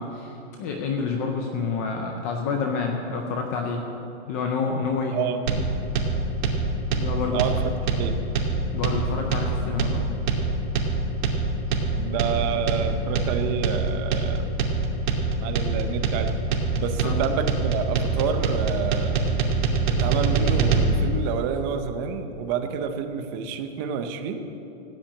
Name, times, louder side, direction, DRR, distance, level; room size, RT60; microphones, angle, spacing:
voice 1, 0.0-3.9 4.3-5.3 6.9-7.4 8.7-10.1 17.0-17.2, left 5 dB, 15° left, 3 dB, 0.4 m, -28 dB
sound 1, 5.5-20.8, right 4 dB, 80° right, 2.7 m, -24 dB
voice 2, 7.3-8.2 11.9-14.5 15.4-16.3 16.8-19.3 19.9-24.4, right 7 dB, 20° right, 7 dB, 0.7 m, -28 dB
15.0 x 8.9 x 8.6 m, 2.8 s
supercardioid pair, 175°, 31 cm